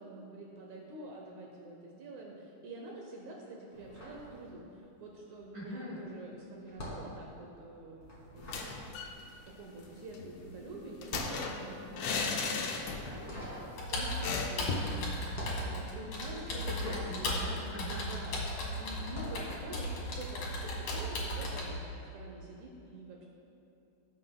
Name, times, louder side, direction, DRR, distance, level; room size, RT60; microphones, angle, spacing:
voice 1, 0.0-8.7 9.5-17.1 18.0-23.2, right 2 dB, 70° right, -1 dB, 2.1 m, -47 dB
sound 1, 3.7-5.0 5.2-18.4 19.0-19.5, equal, 20° left, 2.1 m, -46 dB
voice 2, 5.5-6.0 16.5-18.1, left 1 dB, 50° right, -5 dB, 1.5 m, -42 dB
sound 2, 8.4-9.2 9.5-9.6 9.8-13.3 13.6-13.7 14.2-15.0, left 4 dB, 75° left, 1.4 m, -36 dB
Computer keyboard, 13.8-21.7, left 1 dB, 60° left, 2.8 m, -36 dB
19.0 x 7.6 x 2.3 m, 2.8 s
omnidirectional pair, 3.8 m